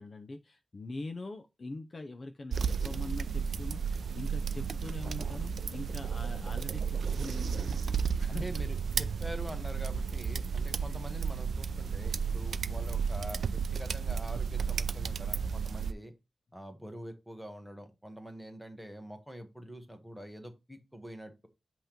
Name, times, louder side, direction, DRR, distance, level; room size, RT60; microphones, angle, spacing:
voice 1, 0.0-8.4, left 2 dB, 35° left, 0.6 m, -43 dB
sound 1, 2.5-15.9, right 6 dB, 75° right, 0.4 m, -33 dB
voice 2, 8.3-16.1 16.5-21.5, equal, ahead, 1.1 m, -45 dB
8.0 x 3.0 x 5.1 m
wide cardioid pair, 150°, 0 cm